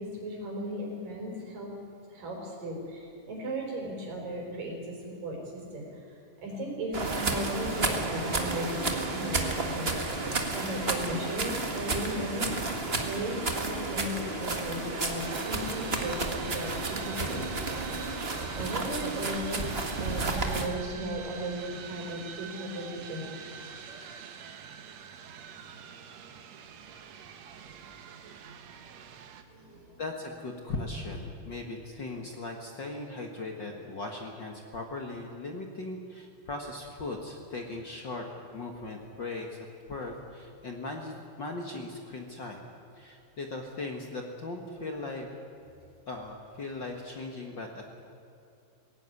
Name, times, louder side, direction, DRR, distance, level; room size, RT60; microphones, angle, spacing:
voice 1, 0.0-1.7 2.1-5.8 6.4-9.9 10.5-12.5 13.0-17.6 18.6-19.6 20.0-23.5 29.5-30.0, equal, 80° right, 0 dB, 6.4 m, -36 dB
sound 1, 6.9-20.7, right 3 dB, 30° right, 1.2 m, -32 dB
sound 2, 15.2-29.4, right 7 dB, 60° right, 2.2 m, -45 dB
voice 2, 30.0-39.6 39.9-42.6 43.0-45.3 46.1-48.0, left 2 dB, 45° left, 2 dB, 1.7 m, -38 dB
21.5 x 17.0 x 9.8 m, 2.6 s
omnidirectional pair, 3.8 m